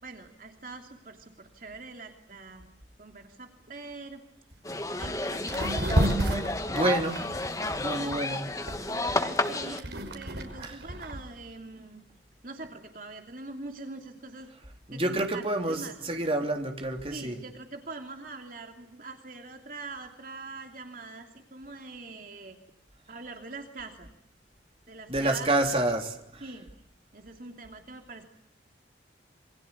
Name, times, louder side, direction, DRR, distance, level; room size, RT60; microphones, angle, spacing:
voice 1, 0.0-2.7 3.0-4.2 5.0-5.8 8.0-8.2 8.9-12.1 12.4-14.5 14.9-16.0 17.1-22.6 23.1-24.1 24.9-25.8 26.4-26.7 27.1-28.2, right 3 dB, 45° right, 4 dB, 2.9 m, -43 dB
sound 1, 4.5-4.6 5.0-5.2 5.5-8.2 8.7-11.2, right 1 dB, 65° right, 5.5 m, -30 dB
sound 2, 4.7-9.8, left 2 dB, 20° left, 1.5 m, -31 dB
voice 2, 6.7-7.2 7.8-8.4 10.6-10.8 14.9-17.4 25.1-26.4, right 2 dB, 30° right, 3 dB, 3.4 m, -28 dB
27.5 x 24.0 x 8.5 m, 0.75 s
head